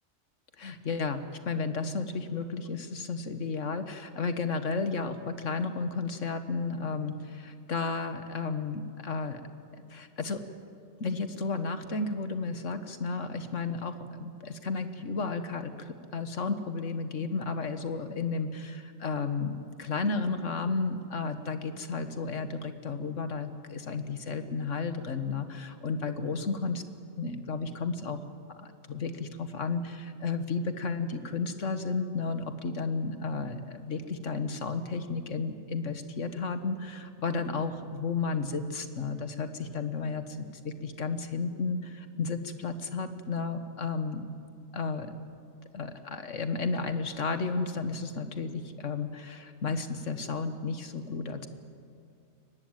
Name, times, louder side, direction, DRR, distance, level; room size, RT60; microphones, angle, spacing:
voice 1, 0.6-9.4 9.9-10.4 11.0-26.8 27.2-28.2 28.6-44.3 44.7-45.1 45.7-51.5, left 4 dB, 65° left, 9 dB, 1.6 m, -33 dB
23.0 x 19.5 x 9.1 m, 2.3 s
omnidirectional pair, 1.4 m